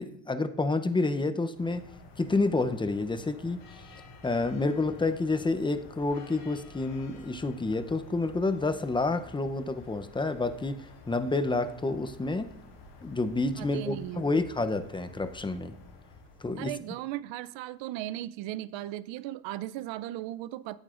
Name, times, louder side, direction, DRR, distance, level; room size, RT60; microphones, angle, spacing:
voice 1, 0.0-1.9 2.2-3.6 4.2-12.5 13.0-15.7 16.4-16.8, left 3 dB, 10° left, 0.6 m, -29 dB
sound 1, 1.5-17.0, left 3 dB, 60° left, 3.4 m, -51 dB
voice 2, 13.6-14.3 16.6-20.8, right 14 dB, 70° right, 0.6 m, -37 dB
16.0 x 8.9 x 2.5 m
supercardioid pair, 90°, 46 cm